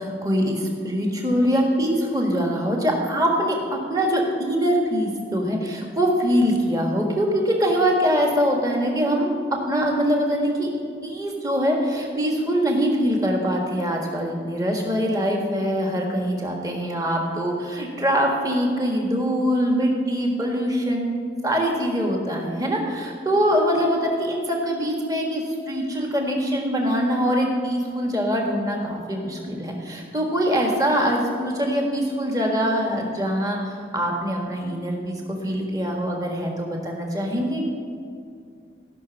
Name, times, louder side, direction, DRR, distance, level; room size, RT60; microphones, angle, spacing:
voice 1, 0.0-3.6 3.9-9.4 9.7-10.7 11.0-21.1 21.4-37.6, equal, 20° right, 0 dB, 1.6 m, -23 dB
15.5 x 6.1 x 7.2 m, 2.4 s
head